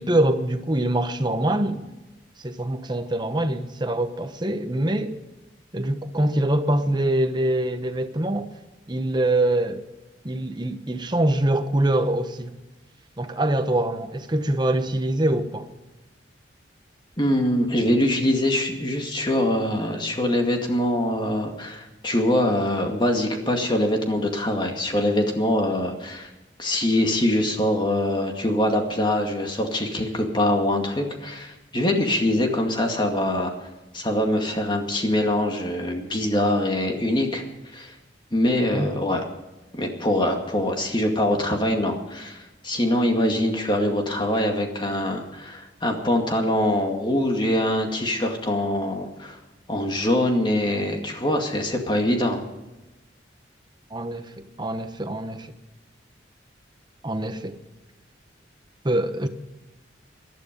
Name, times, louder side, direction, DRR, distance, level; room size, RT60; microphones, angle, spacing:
voice 1, 0.0-1.9 2.4-5.2 5.7-8.5 8.9-9.8 10.2-12.5 13.2-15.7 38.7-38.9 53.9-54.3 54.6-55.5 57.0-57.6 58.8-59.3, right 1 dB, 25° right, 1.1 m, -24 dB
voice 2, 17.2-26.3 26.6-33.5 33.9-37.4 37.7-37.9 38.3-39.2 39.7-49.4 49.7-52.4, left 1 dB, 25° left, 2.2 m, -23 dB
19.0 x 12.5 x 5.3 m
head